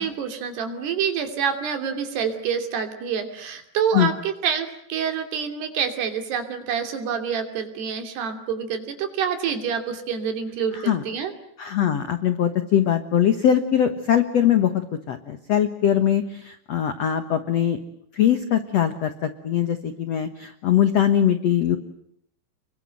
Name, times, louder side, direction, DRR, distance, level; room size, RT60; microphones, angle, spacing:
voice 1, 0.0-11.3, right 7 dB, 65° right, 7 dB, 4.8 m, -27 dB
voice 2, 10.7-11.0 11.6-17.8 18.1-21.8, left 10 dB, 75° left, 9 dB, 1.5 m, -21 dB
29.5 x 23.0 x 7.7 m, 0.70 s
omnidirectional pair, 5.2 m